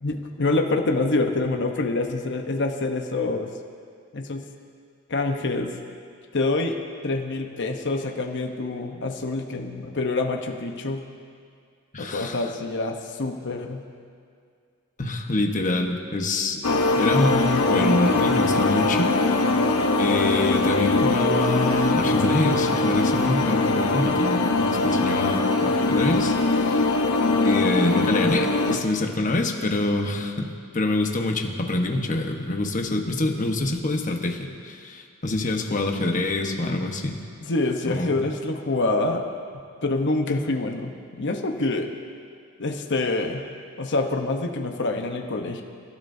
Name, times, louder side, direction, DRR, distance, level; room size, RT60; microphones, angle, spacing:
voice 1, 0.0-3.5 4.1-4.4 5.1-5.7 6.3-6.8 7.0-11.0 12.0-13.8 37.4-39.3 39.8-41.9 42.6-43.4 43.8-45.6, left 2 dB, 55° left, 3 dB, 1.0 m, -26 dB
voice 2, 11.9-12.4 15.0-16.6 16.9-19.4 20.0-26.9 27.4-30.5 30.7-37.2 37.8-38.1, left 2 dB, 35° left, 2 dB, 1.2 m, -25 dB
sound 1, 16.6-28.8, left 3 dB, 80° left, 0.9 m, -22 dB
28.0 x 13.0 x 2.7 m, 2.2 s
head